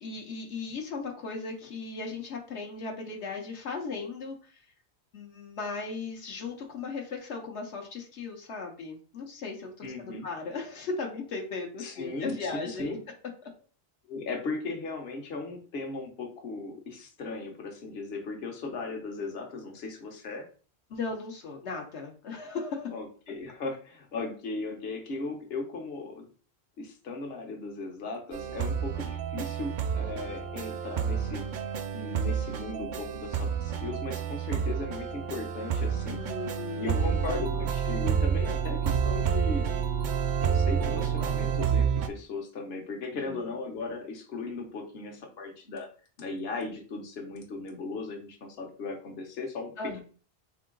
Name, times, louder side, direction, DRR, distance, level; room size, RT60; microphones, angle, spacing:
voice 1, 0.0-4.6 5.1-12.9 20.9-22.9 36.1-37.5 43.1-43.5 49.8-50.0, left 4 dB, 85° left, 1 dB, 1.2 m, -37 dB
voice 2, 9.8-10.3 11.8-13.0 14.1-20.5 22.9-26.3 26.8-31.4 31.9-36.2 36.8-39.7 40.4-45.9 46.2-49.7, left 3 dB, 65° left, 2 dB, 1.2 m, -37 dB
sound 1, 28.3-42.1, right 7 dB, 60° right, 0.5 m, -29 dB
3.7 x 3.6 x 3.8 m, 0.39 s
omnidirectional pair, 1.1 m